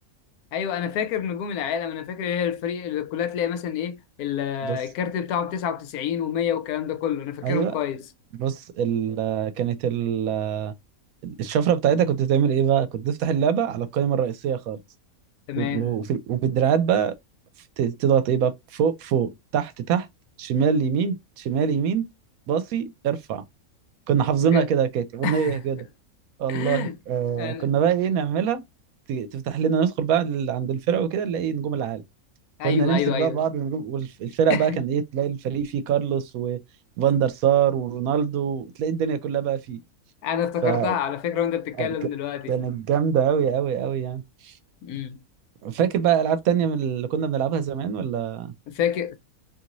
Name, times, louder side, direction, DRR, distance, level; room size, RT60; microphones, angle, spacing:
voice 1, 0.5-8.1 15.5-15.9 24.4-24.7 25.2-25.6 26.5-27.0 27.4-27.7 32.6-33.4 34.5-34.7 40.2-42.6 44.8-45.2 48.7-49.2, left 8 dB, 80° left, 1.1 m, -28 dB
voice 2, 7.4-7.7 8.4-10.7 11.2-14.8 15.6-17.1 17.8-20.1 20.4-22.1 22.5-23.4 24.1-25.8 26.4-28.6 29.1-32.0 32.6-36.6 37.0-39.8 40.6-41.0 41.8-41.9 42.5-44.5 45.6-48.5, right 8 dB, 75° right, 1.0 m, -24 dB
2.7 x 2.5 x 2.9 m
omnidirectional pair, 1.6 m